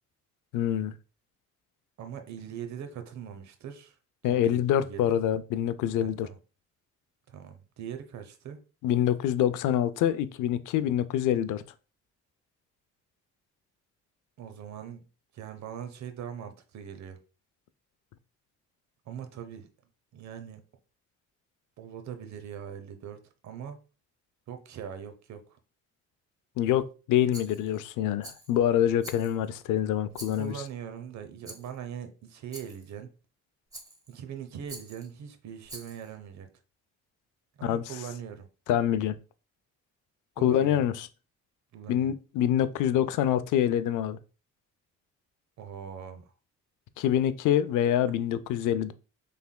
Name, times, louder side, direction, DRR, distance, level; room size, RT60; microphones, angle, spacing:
voice 1, 0.5-0.9 4.2-6.3 8.8-11.6 26.6-30.5 37.6-37.8 38.7-39.2 40.4-41.1 41.9-44.2 47.0-48.9, left 10 dB, 85° left, 0.5 m, -26 dB
voice 2, 2.0-4.0 4.2-5.1 6.0-6.4 7.3-8.6 14.4-15.0 15.3-17.2 19.1-19.7 20.1-20.6 21.8-23.8 24.5-25.6 30.3-33.1 34.1-36.5 37.6-38.5 40.4-40.9 41.7-42.1 45.6-46.3, right 8 dB, 65° right, 0.9 m, -41 dB
Rattle, 27.3-27.8 28.2-28.6 29.0-29.5 30.1-30.7 31.4-31.8 32.5-32.9 33.7-34.1 34.7-35.1 35.6-36.1, right 1 dB, 10° right, 1.1 m, -46 dB
5.6 x 3.4 x 2.2 m
cardioid pair, 90°, 30 cm